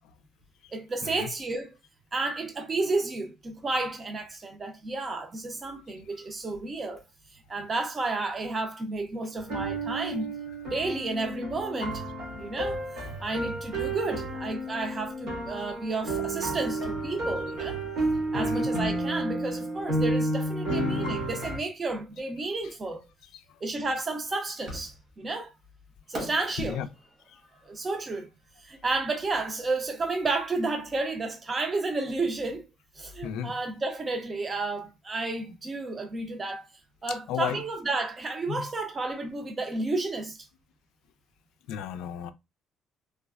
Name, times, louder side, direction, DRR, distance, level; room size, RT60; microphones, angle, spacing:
voice 1, 0.7-1.7 2.1-7.0 7.5-10.3 10.7-12.0 12.4-12.8 13.2-17.8 18.3-23.0 23.6-25.5 26.1-26.8 27.6-28.3 28.6-32.7 33.0-36.7 37.0-40.4, right 3 dB, 20° right, 0.5 m, -31 dB
sound 1, 9.4-21.6, right 1 dB, 70° right, 1.6 m, -31 dB
voice 2, 18.3-18.7 26.6-26.9 27.3-27.4 33.2-33.6 37.1-37.6 38.5-38.7 41.7-42.3, left 9 dB, 80° left, 0.3 m, -34 dB
Fireworks, 24.7-25.3 26.1-29.3, right 1 dB, 40° right, 1.1 m, -43 dB
3.3 x 2.0 x 2.3 m
cardioid pair, 165°, 0 cm